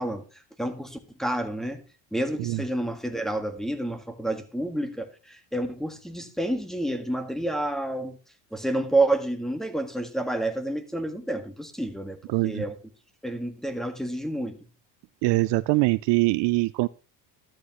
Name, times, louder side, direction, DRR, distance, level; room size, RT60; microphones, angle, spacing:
voice 1, 0.0-1.8 2.1-8.2 8.5-12.7 13.2-14.6, right 1 dB, ahead, 1.6 m, -29 dB
voice 2, 12.3-12.6 15.2-16.9, right 22 dB, 60° right, 0.5 m, -23 dB
13.0 x 8.7 x 3.0 m
supercardioid pair, 95°, 47 cm